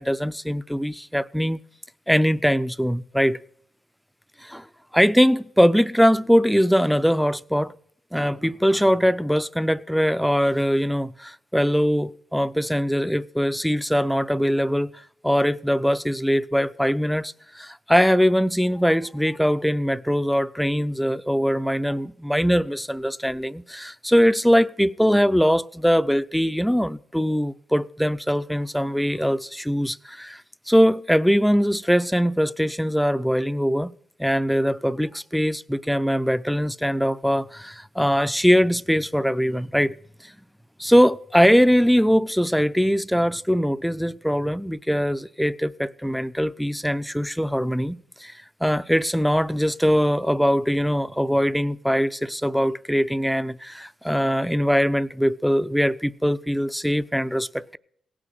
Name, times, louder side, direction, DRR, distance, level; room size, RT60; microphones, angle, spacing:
voice 1, 0.0-1.6 2.1-3.4 4.4-4.6 4.9-7.7 8.1-14.9 15.2-30.4 30.7-33.9 34.2-39.9 40.8-48.3 48.6-57.8, equal, ahead, 0.5 m, -21 dB
17.0 x 6.3 x 7.6 m
cardioid pair, 70°, 0 cm